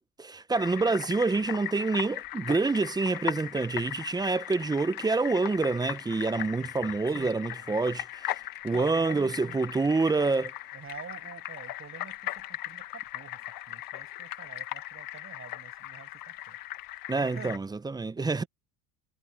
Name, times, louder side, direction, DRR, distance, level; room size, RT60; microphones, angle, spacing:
voice 1, 0.0-8.2 8.6-10.5 17.1-18.4, right 3 dB, 10° right, 0.6 m, -27 dB
sound 1, 0.5-17.6, left 15 dB, 50° left, 1.4 m, -39 dB
voice 2, 7.1-7.8 8.7-9.6 10.7-13.4 13.7-16.6 17.2-17.6 18.2-18.5, right 7 dB, 30° right, 7.0 m, -47 dB
supercardioid pair, 115°, 43 cm